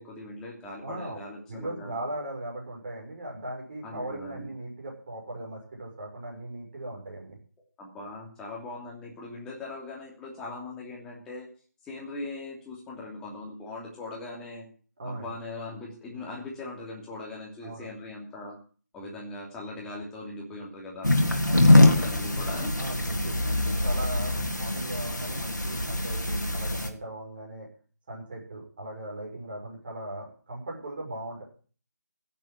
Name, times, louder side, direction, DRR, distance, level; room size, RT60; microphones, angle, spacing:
voice 1, 0.0-2.0 3.8-4.5 7.8-11.5 11.8-14.6 15.0-18.6 18.9-21.1 21.6-22.7, left 2 dB, 5° left, -3 dB, 2.8 m, -40 dB
voice 2, 0.8-1.2 1.5-7.4 15.0-15.3 17.6-17.9 21.4-21.8 22.8-27.7 28.1-31.4, right 1 dB, 30° right, -1 dB, 6.3 m, -38 dB
sound 1, 21.0-26.9, left 2 dB, 85° left, 3.1 m, -23 dB
15.5 x 7.8 x 7.5 m, 0.41 s
figure-of-eight pair, 160°, 10 cm